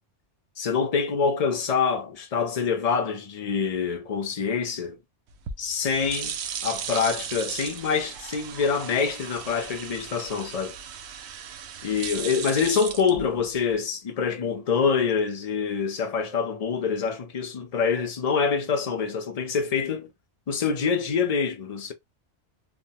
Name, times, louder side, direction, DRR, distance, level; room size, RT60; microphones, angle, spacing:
voice 1, 0.6-5.0 5.6-10.8 11.8-20.1 20.5-21.9, left 6 dB, 45° left, 0.5 m, -26 dB
sound 1, 5.3-13.8, right 7 dB, 70° right, 0.8 m, -36 dB
3.2 x 2.1 x 2.7 m
omnidirectional pair, 1.2 m